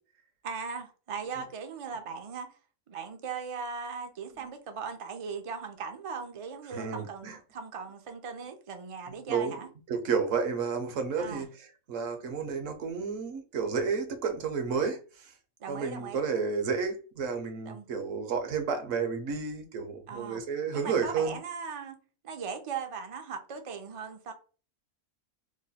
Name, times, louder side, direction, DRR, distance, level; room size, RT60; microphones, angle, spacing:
voice 1, 0.4-2.5 2.9-9.7 11.2-11.5 15.6-16.2 17.7-17.9 20.1-20.4 20.7-22.0 22.2-24.3, right 5 dB, 60° right, 0.3 m, -39 dB
voice 2, 6.7-7.4 9.3-9.6 9.9-15.3 15.7-21.4, right 5 dB, 75° right, 1.1 m, -31 dB
3.0 x 2.2 x 4.0 m
omnidirectional pair, 1.4 m